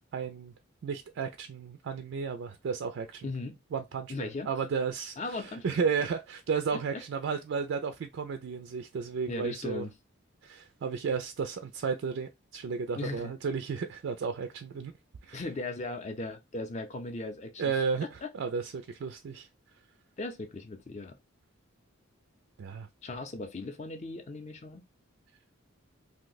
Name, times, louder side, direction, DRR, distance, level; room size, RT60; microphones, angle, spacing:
voice 1, 0.1-0.5 0.8-3.2 3.7-9.8 10.4-14.9 15.3-15.4 17.6-18.0 18.3-19.5 22.6-22.9, right 5 dB, 60° right, 0.3 m, -33 dB
voice 2, 3.2-3.6 4.1-4.5 5.2-5.8 6.7-7.0 9.3-10.0 13.0-13.3 15.3-17.7 18.0-18.3 20.2-21.2 23.0-24.8, left 2 dB, 35° left, 0.5 m, -38 dB
2.7 x 2.1 x 3.9 m
head